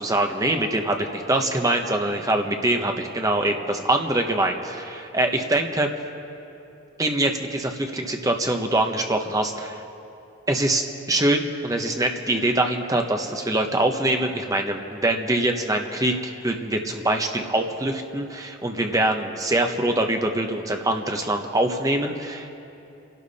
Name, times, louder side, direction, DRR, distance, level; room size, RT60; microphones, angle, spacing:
voice 1, 0.0-5.9 7.0-9.8 10.5-22.5, right 1 dB, 15° right, 4 dB, 1.0 m, -24 dB
29.0 x 12.0 x 4.2 m, 2.8 s
head